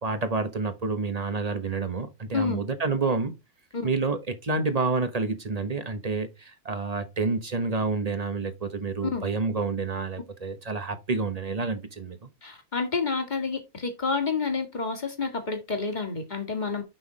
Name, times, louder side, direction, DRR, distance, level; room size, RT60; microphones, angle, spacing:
voice 1, 0.0-3.3 3.8-12.3, right 4 dB, 30° right, 1.1 m, -29 dB
voice 2, 12.4-16.8, left 4 dB, 35° left, 2.0 m, -29 dB
6.5 x 5.8 x 4.0 m
omnidirectional pair, 1.4 m